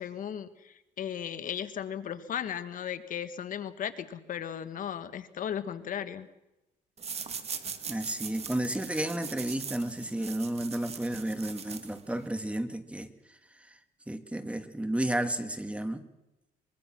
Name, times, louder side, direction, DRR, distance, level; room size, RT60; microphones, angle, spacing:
voice 1, 0.0-6.3, left 9 dB, 55° left, 11 dB, 1.5 m, -36 dB
sound 1, 7.0-12.3, right 6 dB, 40° right, 2.1 m, -41 dB
voice 2, 7.9-13.1 13.6-13.8 14.1-16.1, right 1 dB, 5° right, 9 dB, 2.0 m, -32 dB
24.0 x 22.5 x 6.1 m, 0.94 s
cardioid pair, 110°, 17 cm